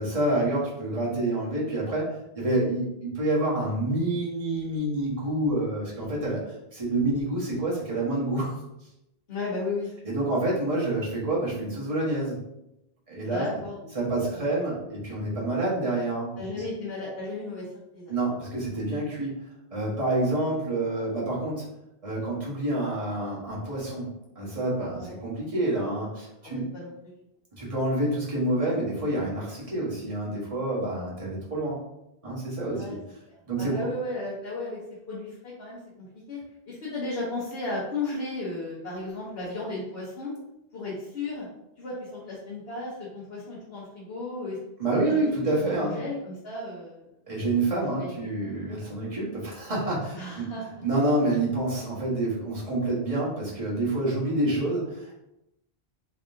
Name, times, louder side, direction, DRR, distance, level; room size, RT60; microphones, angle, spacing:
voice 1, 0.0-2.1 2.3-6.4 6.7-8.5 10.0-12.4 13.1-13.4 13.9-16.6 18.1-19.4 19.7-21.6 22.0-26.7 27.6-31.8 32.2-33.0 33.5-33.9 44.8-46.0 47.3-50.5 50.8-55.1, right 2 dB, 35° right, -6 dB, 1.3 m, -28 dB
voice 2, 9.3-9.9 13.2-13.9 14.3-14.5 16.4-18.1 20.2-20.3 24.9-25.1 26.4-26.9 32.7-33.0 33.6-34.8 35.1-36.4 36.7-40.3 40.7-41.5 41.8-44.6 44.9-47.0 48.0-48.2 50.1-50.8 54.0-54.1, left 2 dB, 75° left, -7 dB, 1.2 m, -35 dB
3.7 x 3.4 x 2.6 m, 0.88 s
omnidirectional pair, 1.0 m